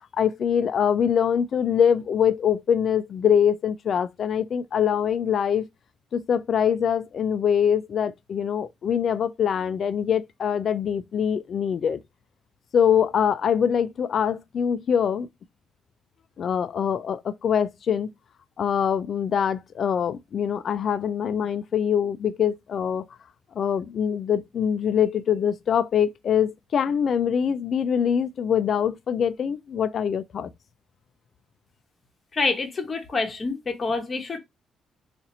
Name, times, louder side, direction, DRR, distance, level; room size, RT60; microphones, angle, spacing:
voice 1, 0.2-5.7 6.1-12.0 12.7-15.3 16.4-18.1 18.6-23.1 23.6-30.5, left 8 dB, 55° left, 0.3 m, -24 dB
voice 2, 32.3-34.4, left 3 dB, 30° left, 0.9 m, -27 dB
2.7 x 2.5 x 4.1 m
cardioid pair, 120°, 0 cm